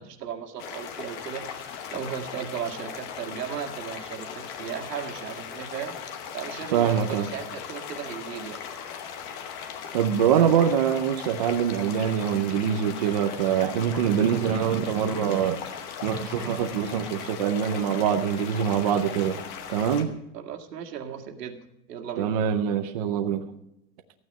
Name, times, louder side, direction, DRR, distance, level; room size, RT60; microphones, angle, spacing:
voice 1, 0.0-8.6 20.3-22.3, right 8 dB, 80° right, 5 dB, 2.0 m, -36 dB
sound 1, 0.6-20.0, left 7 dB, 20° left, 0.9 m, -38 dB
voice 2, 6.7-7.3 9.9-15.6 16.0-19.4 19.7-20.1 22.2-23.5, right 8 dB, 25° right, 7 dB, 0.5 m, -24 dB
14.5 x 9.2 x 5.3 m, 0.84 s
supercardioid pair, 170°, 47 cm